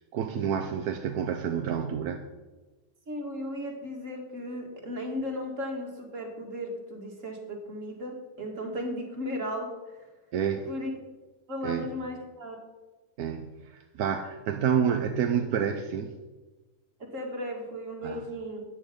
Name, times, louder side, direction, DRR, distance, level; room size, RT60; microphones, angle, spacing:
voice 1, 0.1-2.2 10.3-10.7 11.6-11.9 13.2-16.1 18.0-18.2, right 8 dB, 85° right, 6 dB, 1.3 m, -29 dB
voice 2, 3.1-10.1 10.7-10.9 11.5-12.6 17.0-18.6, left 1 dB, 55° right, 1 dB, 2.5 m, -36 dB
13.5 x 9.2 x 5.2 m, 1.2 s
omnidirectional pair, 1.6 m